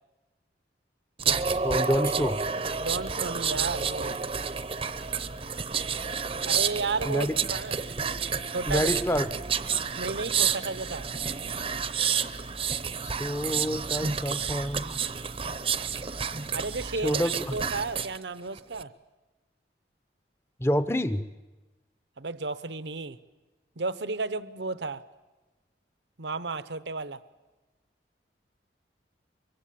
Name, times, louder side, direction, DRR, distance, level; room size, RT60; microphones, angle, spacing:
sound 1, 1.2-18.2 18.6-18.8, right 6 dB, 30° right, 0.8 m, -30 dB
voice 1, 1.6-2.4 7.1-7.3 8.3-8.4 8.7-9.3 13.0-15.0 17.0-17.5 20.6-21.2, equal, 15° left, 12 dB, 0.8 m, -28 dB
voice 2, 2.8-4.2 6.4-7.8 8.5-8.9 10.0-11.1 16.5-18.9 22.2-23.2 23.8-25.0 26.2-27.2, right 3 dB, 75° right, 14 dB, 0.9 m, -33 dB
24.0 x 23.5 x 8.5 m, 1.2 s
head